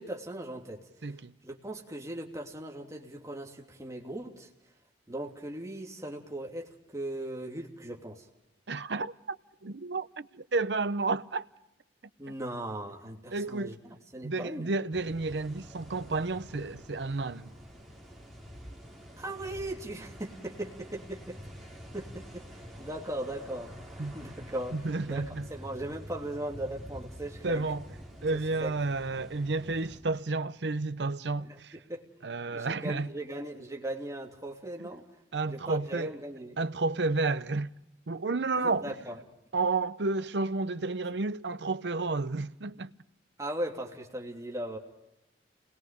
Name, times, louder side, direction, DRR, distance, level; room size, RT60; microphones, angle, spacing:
voice 1, 0.0-1.2 1.4-4.5 5.1-8.3 12.2-14.7 19.2-21.4 21.9-27.7 28.3-28.7 31.4-32.1 32.5-35.0 35.5-36.6 38.6-39.2 43.4-44.8, right 1 dB, 20° right, 2.9 m, -39 dB
voice 2, 1.0-1.3 8.7-9.4 9.6-11.5 13.3-13.7 14.2-17.5 24.0-24.1 24.7-25.4 27.4-27.8 28.2-31.7 32.2-33.1 35.3-36.1 36.6-37.7 38.1-38.9 39.5-42.9, right 3 dB, 70° right, 0.8 m, -31 dB
sound 1, 14.9-30.0, equal, ahead, 5.2 m, -47 dB
29.5 x 21.0 x 5.3 m
head